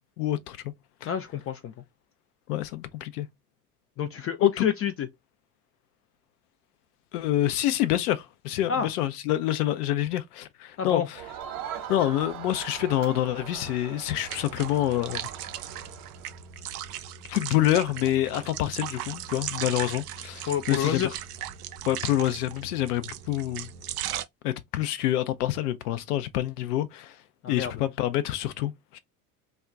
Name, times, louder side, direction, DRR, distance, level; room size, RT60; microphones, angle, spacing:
voice 1, 0.2-0.6 1.0-1.1 2.5-3.3 4.4-4.7 7.1-11.2 11.9-15.3 17.3-21.1 21.9-23.7 24.4-27.2 27.5-29.0, left 13 dB, 75° left, 0.6 m, -27 dB
voice 2, 1.1-1.7 4.0-5.1 8.7-8.9 10.8-11.1 20.5-21.2 27.4-27.7, left 8 dB, 30° left, 0.4 m, -28 dB
Crowd, 11.1-16.5, right 9 dB, 45° right, 0.8 m, -41 dB
sound 1, 14.3-24.2, right 11 dB, 80° right, 0.5 m, -37 dB
2.3 x 2.1 x 3.6 m
hypercardioid pair, 65°, 46 cm